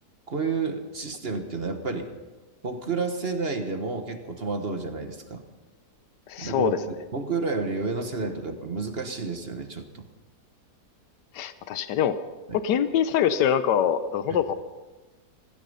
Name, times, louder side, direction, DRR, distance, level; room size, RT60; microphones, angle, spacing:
voice 1, 0.3-2.1 2.6-5.4 6.4-6.7 7.1-10.0 12.5-12.6 14.3-14.4, right 4 dB, 40° right, 6 dB, 1.4 m, -30 dB
voice 2, 6.3-6.8 11.3-12.2 12.5-14.5, left 9 dB, 90° left, 12 dB, 1.4 m, -24 dB
16.0 x 16.0 x 5.5 m, 1.2 s
omnidirectional pair, 1.8 m